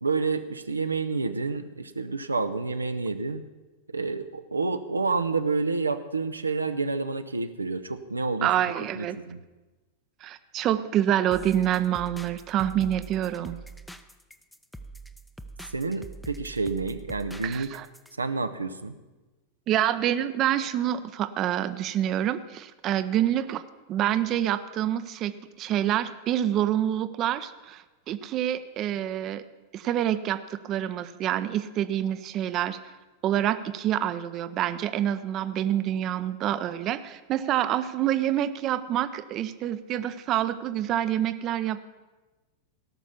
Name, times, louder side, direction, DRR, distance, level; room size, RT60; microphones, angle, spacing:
voice 1, 0.0-3.4 3.9-9.4 15.7-17.7 18.2-19.0, right 4 dB, 80° right, 9 dB, 0.6 m, -29 dB
voice 2, 8.4-9.2 10.2-13.6 17.4-17.9 19.7-23.6 23.9-29.4 29.7-32.8 33.2-41.8, right 11 dB, 35° right, 12 dB, 0.6 m, -27 dB
sound 1, 11.3-18.2, right 2 dB, 5° left, 0.7 m, -44 dB
17.0 x 6.1 x 7.2 m, 1.2 s
figure-of-eight pair, 90°, 0 cm